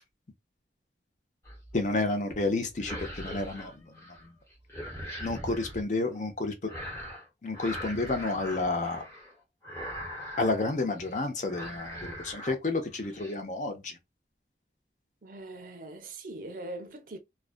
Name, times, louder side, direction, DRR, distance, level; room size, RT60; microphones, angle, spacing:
sound 1, 1.4-1.9 2.7-4.3 4.5-5.8 6.7-7.3 7.5-9.3 9.6-10.6 11.0-11.2 11.5-12.6 12.9-13.3, equal, 15° left, 1.0 m, -41 dB
voice 1, 1.7-3.7 5.2-6.5 7.4-9.0 10.4-13.9, left 2 dB, 45° left, 0.6 m, -30 dB
voice 2, 15.2-17.2, right 2 dB, 50° right, 0.5 m, -41 dB
2.4 x 2.2 x 2.4 m
head